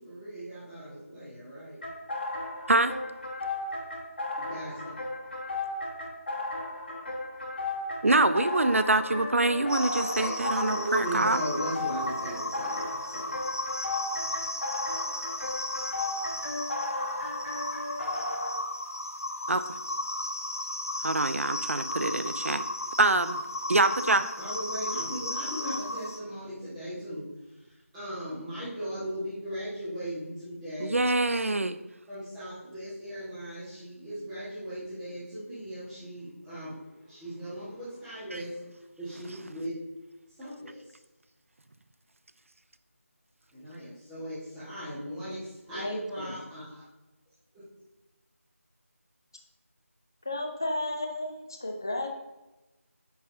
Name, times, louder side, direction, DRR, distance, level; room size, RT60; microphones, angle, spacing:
voice 1, 0.0-1.8 4.5-4.9 10.0-13.3 24.4-27.2 27.9-30.9 32.1-36.8 37.1-38.6 39.0-39.7 40.4-41.0 43.5-46.8, right 1 dB, 5° right, -13 dB, 1.4 m, -37 dB
sound 1, 1.8-18.5, left 2 dB, 45° left, 1.4 m, -35 dB
voice 2, 8.0-11.4 19.5-19.6 21.0-22.6 23.0-23.4 23.7-24.3 30.8-31.8 38.3-38.4, right 2 dB, 60° right, 11 dB, 0.5 m, -25 dB
sound 2, 9.7-26.2, left 1 dB, 75° left, 0.9 m, -35 dB
voice 3, 45.7-46.4 50.3-52.1, left 1 dB, 15° left, 3 dB, 0.4 m, -33 dB
9.4 x 5.5 x 2.6 m, 1.0 s
figure-of-eight pair, 170°, 8 cm